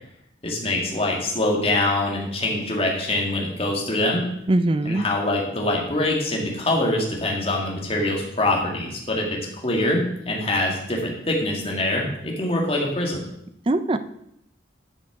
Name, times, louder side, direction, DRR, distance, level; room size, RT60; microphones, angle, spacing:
voice 1, 0.4-4.2 4.8-13.2, left 1 dB, 30° left, -1 dB, 2.0 m, -24 dB
voice 2, 4.5-5.0 13.7-14.0, right 2 dB, 30° right, 12 dB, 0.4 m, -21 dB
11.0 x 6.2 x 4.8 m, 0.76 s
head